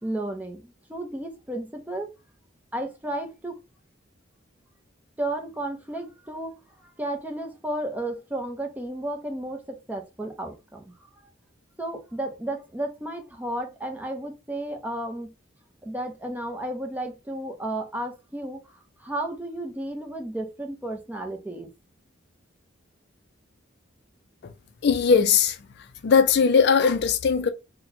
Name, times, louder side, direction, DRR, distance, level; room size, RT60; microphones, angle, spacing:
voice 1, 0.0-2.1 2.7-3.6 5.2-6.6 7.0-10.9 11.8-15.3 15.8-18.6 19.0-21.7, right 1 dB, 10° right, 0.6 m, -33 dB
voice 2, 24.8-25.6 26.0-27.5, left 6 dB, 60° left, 0.4 m, -19 dB
4.2 x 2.1 x 2.7 m
head